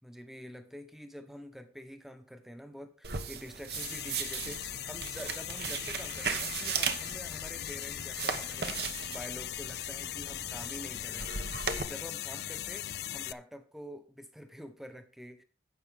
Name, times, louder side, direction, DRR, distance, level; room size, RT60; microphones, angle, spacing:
voice 1, 0.0-15.4, equal, ahead, 0.9 m, -47 dB
sound 1, 3.0-11.8, right 6 dB, 60° right, 1.0 m, -37 dB
sound 2, 3.7-13.3, left 12 dB, 65° left, 0.4 m, -39 dB
11.0 x 8.0 x 3.6 m
head